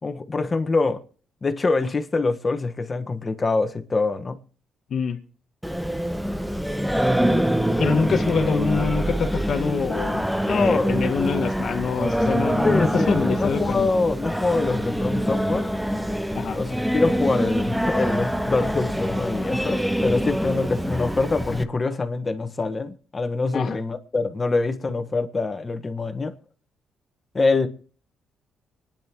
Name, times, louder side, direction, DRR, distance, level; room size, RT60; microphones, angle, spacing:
voice 1, 0.0-1.0 1.4-4.4 10.5-11.0 12.6-15.7 16.5-26.3 27.3-27.7, left 3 dB, 30° left, 1.4 m, -24 dB
Singing, 5.6-21.6, equal, ahead, 0.8 m, -25 dB
voice 2, 7.8-13.9 16.3-16.6 23.5-23.8, left 5 dB, 55° left, 1.6 m, -25 dB
25.0 x 10.5 x 3.0 m
cardioid pair, 90°, 0 cm